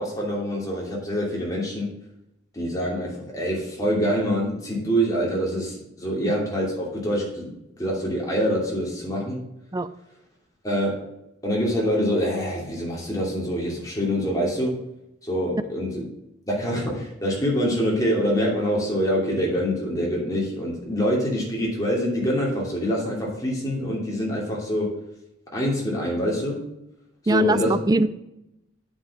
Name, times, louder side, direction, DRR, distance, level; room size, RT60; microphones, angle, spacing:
voice 1, 0.0-1.9 2.5-9.4 10.6-11.1 11.4-14.8 15.2-16.1 16.5-25.0 25.5-26.7 27.3-27.8, equal, 20° left, -3 dB, 2.8 m, -25 dB
voice 2, 27.3-28.1, right 2 dB, 20° right, 13 dB, 0.4 m, -21 dB
8.3 x 5.5 x 6.0 m, 0.87 s
head